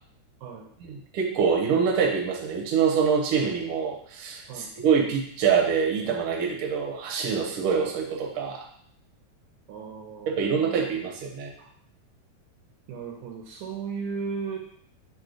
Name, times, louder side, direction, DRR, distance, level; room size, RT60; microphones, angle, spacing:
voice 1, 0.8-8.6 10.3-11.5, right 6 dB, 70° right, -1 dB, 1.3 m, -25 dB
voice 2, 9.7-10.7 12.9-14.6, right 5 dB, 85° right, -2 dB, 2.0 m, -35 dB
4.9 x 2.8 x 3.8 m, 0.65 s
omnidirectional pair, 3.4 m